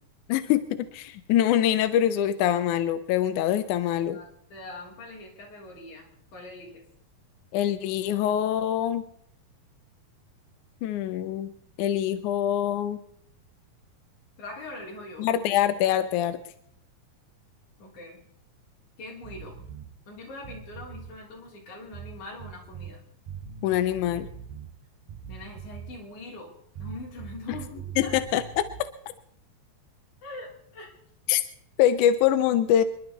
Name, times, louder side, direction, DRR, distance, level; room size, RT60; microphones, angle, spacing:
voice 1, 0.3-4.2 7.5-9.0 10.8-11.5 11.8-13.0 15.2-16.4 23.6-24.3 28.0-28.7 31.3-31.4 31.8-32.8, left 11 dB, 75° left, 11 dB, 1.9 m, -24 dB
voice 2, 3.8-4.2 4.5-6.8 14.4-15.3 17.8-18.2 19.0-19.6 20.1-23.0 25.3-26.5 26.8-28.2 30.2-31.0, left 2 dB, 55° left, -2 dB, 5.1 m, -42 dB
sound 1, 19.2-19.9 20.4-21.1 21.9-22.9 23.3-24.7 25.1-26.0 26.8-28.8, right 7 dB, 75° right, 5.6 m, -42 dB
27.0 x 11.0 x 4.0 m, 0.68 s
omnidirectional pair, 4.2 m